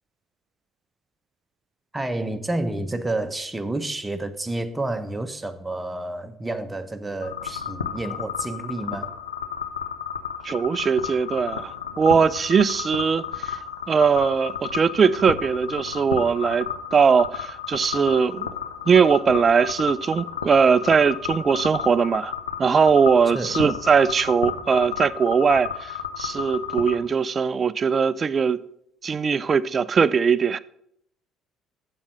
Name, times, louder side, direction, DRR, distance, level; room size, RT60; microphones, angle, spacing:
voice 1, 1.9-9.1 23.3-23.5, right 2 dB, 15° right, 1.1 m, -29 dB
sound 1, 7.2-27.0, left 7 dB, 90° left, 0.6 m, -33 dB
voice 2, 10.4-13.6 13.9-18.5 18.9-22.3 22.6-28.6 29.0-30.6, right 6 dB, 40° right, 0.4 m, -20 dB
7.2 x 6.6 x 7.5 m
hypercardioid pair, 55°, 0 cm